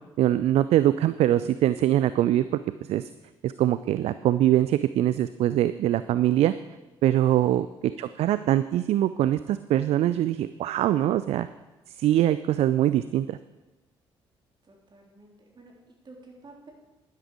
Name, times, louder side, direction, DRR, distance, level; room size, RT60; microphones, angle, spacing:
voice 1, 0.2-2.4 2.9-3.1 3.4-6.5 7.0-11.5 12.0-13.4, right 12 dB, 50° right, 14 dB, 0.4 m, -23 dB
voice 2, 7.4-7.7 14.6-16.7, right 2 dB, 35° right, 0 dB, 3.5 m, -51 dB
11.5 x 10.5 x 4.9 m, 1.1 s
figure-of-eight pair, 45°, 14 cm